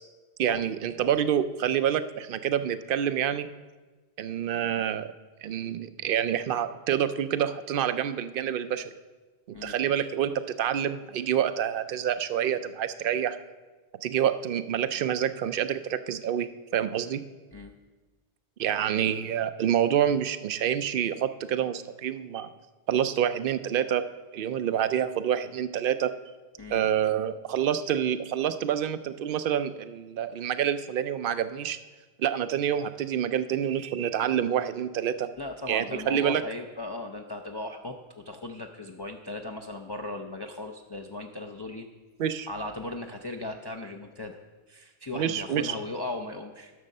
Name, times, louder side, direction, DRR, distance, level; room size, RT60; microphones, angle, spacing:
voice 1, 0.4-3.5 4.2-5.1 5.4-8.9 9.6-13.4 14.0-17.2 18.6-22.5 22.9-24.0 24.3-26.1 26.7-31.8 32.2-35.3 35.7-36.4 42.2-42.5 45.1-45.7, right 9 dB, 65° right, 12 dB, 0.7 m, -27 dB
voice 2, 35.3-41.9 42.5-44.4 44.7-46.7, left 2 dB, 30° left, 3 dB, 0.5 m, -37 dB
11.0 x 6.3 x 6.6 m, 1.3 s
omnidirectional pair, 1.1 m